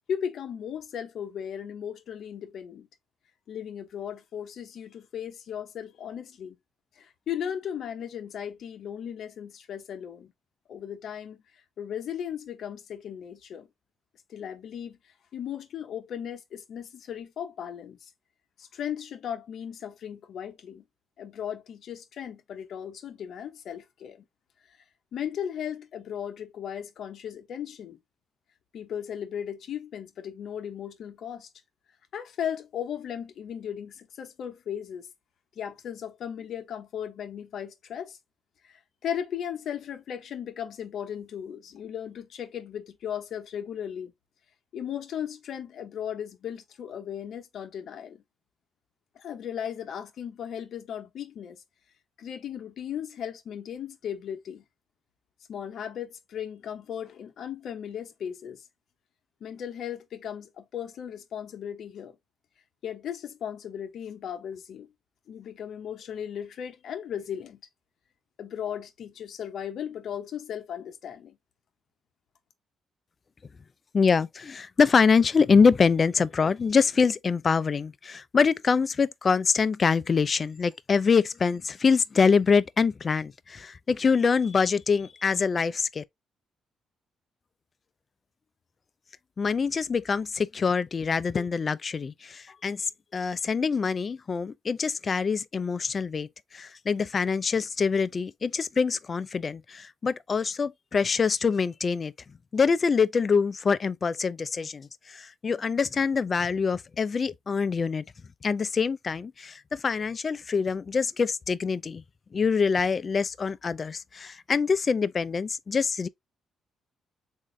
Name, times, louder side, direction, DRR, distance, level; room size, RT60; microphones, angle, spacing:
voice 1, 0.1-2.9 3.5-6.6 7.0-10.3 10.7-11.4 11.8-13.7 14.3-15.0 15.3-18.1 18.6-20.8 21.2-24.2 25.1-28.0 28.7-31.5 32.1-35.1 35.6-38.2 38.7-44.1 44.7-48.2 49.2-51.6 52.2-54.6 55.5-58.6 59.4-62.2 62.8-64.9 65.3-67.6 68.4-71.4, left 9 dB, 65° left, 0.7 m, -36 dB
voice 2, 73.9-86.0 89.4-96.3 96.5-102.1 102.5-108.0 108.4-112.0 112.3-116.1, left 5 dB, 40° left, 0.3 m, -25 dB
3.6 x 2.5 x 3.1 m
cardioid pair, 90°, 0 cm